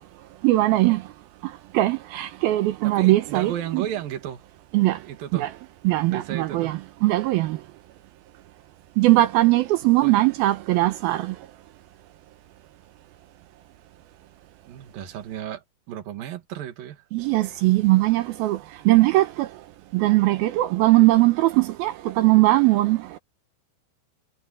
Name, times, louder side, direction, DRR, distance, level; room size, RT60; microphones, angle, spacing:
voice 1, 0.4-1.0 1.7-3.9 4.7-5.0 5.3-5.5 5.8-7.6 9.0-11.3 17.1-18.6 18.9-19.5 19.9-23.0, right 18 dB, 80° right, 2.2 m, -20 dB
voice 2, 2.8-4.4 5.0-5.5 6.1-6.8 9.8-10.3 14.7-17.0, right 10 dB, 60° right, 3.3 m, -34 dB
omnidirectional pair, 5.0 m